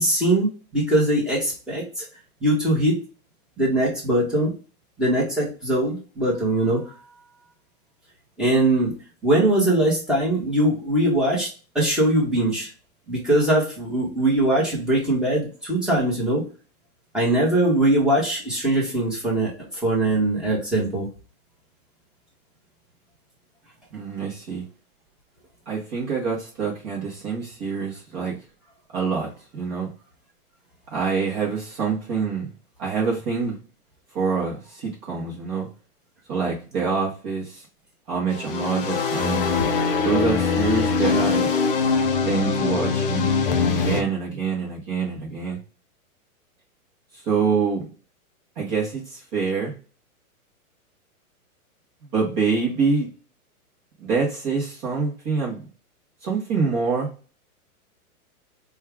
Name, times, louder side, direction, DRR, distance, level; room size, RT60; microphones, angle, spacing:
voice 1, 0.0-2.0 2.4-3.0 3.6-4.5 5.0-6.9 8.4-8.9 9.2-11.5 11.7-12.7 13.1-16.4 17.1-19.5 19.8-21.1, right 1 dB, ahead, -6 dB, 1.0 m, -21 dB
voice 2, 23.9-24.6 25.7-28.4 28.9-29.9 30.9-32.5 32.8-33.6 34.1-35.7 36.3-37.6 38.1-39.5 40.0-41.5 42.2-43.3 43.7-45.6 47.1-47.8 48.6-49.7 52.0-53.1 54.0-55.6 56.2-57.1, right 5 dB, 25° right, -4 dB, 0.9 m, -26 dB
sound 1, 38.3-44.0, left 5 dB, 40° left, 0.5 m, -22 dB
4.5 x 2.3 x 3.4 m, 0.35 s
hypercardioid pair, 155°, 44 cm